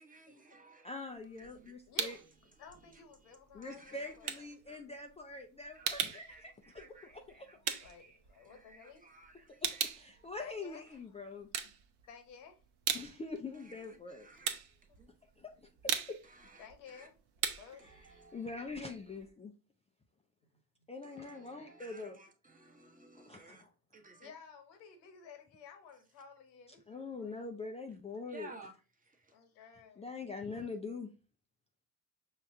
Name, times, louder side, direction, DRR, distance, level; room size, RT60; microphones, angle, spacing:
voice 1, 0.0-0.9 1.4-1.7 2.8-2.9 3.2-3.4 3.6-4.3 4.7-4.8 5.7-9.8 10.2-10.3 13.6-14.5 15.0-15.1 16.2-17.1 17.8-18.6 21.0-23.6 23.9-24.3 28.3-29.3, right 3 dB, 15° right, 0.9 m, -57 dB
voice 2, 0.8-2.2 3.5-7.7 9.6-11.5 12.9-14.3 15.4-16.2 17.8-17.9 18.3-19.5 20.9-22.2 23.1-23.7 26.9-28.5 30.0-31.1, left 3 dB, 15° left, 0.3 m, -44 dB
sound 1, 1.1-2.4 2.7-8.9 9.2-11.0 11.4-12.3 12.6-19.3, right 8 dB, 50° right, 0.8 m, -39 dB
voice 3, 1.9-2.2 2.6-4.5 7.8-9.0 10.4-11.0 11.6-11.8 12.1-12.6 16.6-18.0 24.2-27.4 29.3-30.1 30.5-30.7, left 6 dB, 80° left, 1.1 m, -55 dB
5.5 x 2.2 x 3.5 m
hypercardioid pair, 65°, 50 cm